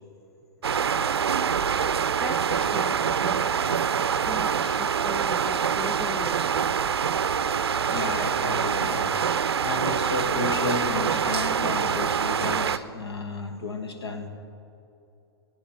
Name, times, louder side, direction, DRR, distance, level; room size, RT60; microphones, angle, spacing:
sound 1, 0.6-12.8, right 7 dB, 70° right, 0.5 m, -25 dB
voice 1, 2.2-3.5 4.3-6.6, left 3 dB, 5° left, 11 dB, 0.3 m, -39 dB
voice 2, 7.9-14.3, left 3 dB, 70° left, 5 dB, 1.8 m, -32 dB
21.0 x 9.0 x 4.2 m, 2.8 s
figure-of-eight pair, 110°, 14 cm